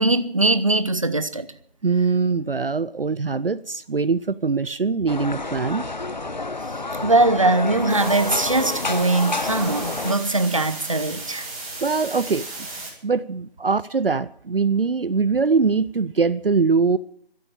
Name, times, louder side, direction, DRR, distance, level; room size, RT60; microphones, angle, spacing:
voice 1, 0.0-1.5 7.0-11.5, right 2 dB, 35° right, 0.9 m, -21 dB
voice 2, 1.8-5.8 11.8-12.5 13.0-17.0, right 4 dB, 65° right, 0.6 m, -22 dB
sound 1, 5.1-10.2, left 3 dB, 45° left, 0.8 m, -29 dB
sound 2, 7.9-12.9, right 2 dB, 5° right, 1.8 m, -35 dB
13.0 x 12.5 x 8.9 m
figure-of-eight pair, 170°, 30 cm